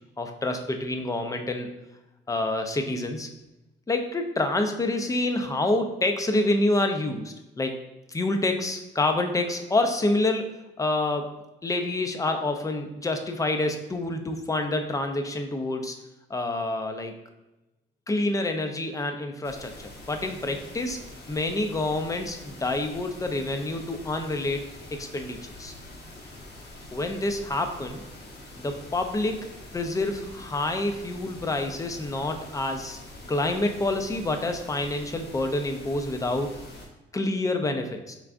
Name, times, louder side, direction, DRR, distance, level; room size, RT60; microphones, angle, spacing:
voice 1, 0.2-1.7 2.3-3.3 3.9-7.7 8.1-10.5 10.8-11.3 11.6-16.0 16.3-17.1 18.1-19.7 20.1-21.0 21.3-25.7 26.9-28.0 28.6-33.0 33.3-36.6 37.1-38.2, left 2 dB, 15° left, 5 dB, 0.5 m, -27 dB
sound 1, 19.4-36.9, left 1 dB, 55° left, 1.1 m, -45 dB
4.5 x 3.4 x 2.5 m, 0.99 s
cardioid pair, 90°, 20 cm